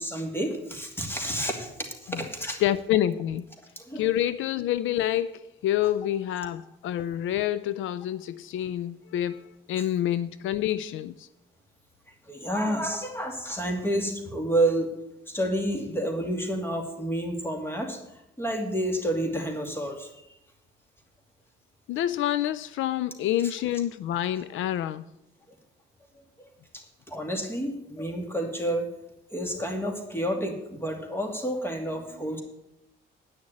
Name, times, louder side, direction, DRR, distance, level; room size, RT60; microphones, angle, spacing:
voice 1, 0.0-2.6 3.8-4.1 12.3-14.9 15.3-18.0 18.4-20.1 26.4-26.5 26.7-28.8 29.3-32.4, right 1 dB, 10° left, 2.5 m, -29 dB
voice 2, 2.6-3.5 4.0-11.3 21.9-25.0, left 12 dB, 80° left, 0.5 m, -27 dB
9.5 x 6.5 x 8.6 m
cardioid pair, 90°, 20 cm